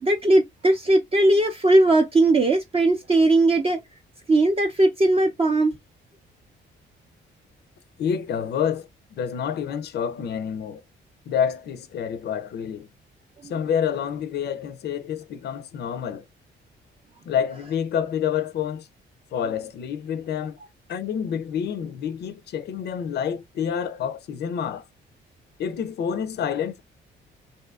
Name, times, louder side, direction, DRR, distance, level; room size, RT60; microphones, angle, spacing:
voice 1, 0.0-3.8 4.3-5.7 13.4-13.5, right 2 dB, 30° right, 0.5 m, -19 dB
voice 2, 8.0-8.9 9.2-10.8 11.3-12.9 13.4-16.2 17.3-18.9 19.3-20.6 20.9-24.8 25.6-26.8, left 8 dB, 55° left, 0.4 m, -28 dB
2.6 x 2.4 x 2.2 m
cardioid pair, 90°, 20 cm